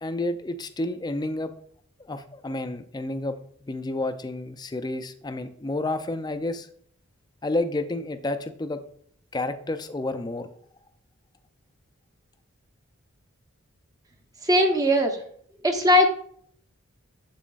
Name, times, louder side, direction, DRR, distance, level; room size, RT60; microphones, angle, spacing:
voice 1, 0.0-1.5 2.0-6.7 7.4-8.8 9.3-10.5, left 2 dB, 20° left, 9 dB, 0.4 m, -30 dB
voice 2, 14.4-15.2 15.6-16.1, left 1 dB, 15° right, 3 dB, 0.7 m, -19 dB
7.5 x 7.2 x 2.4 m, 0.62 s
head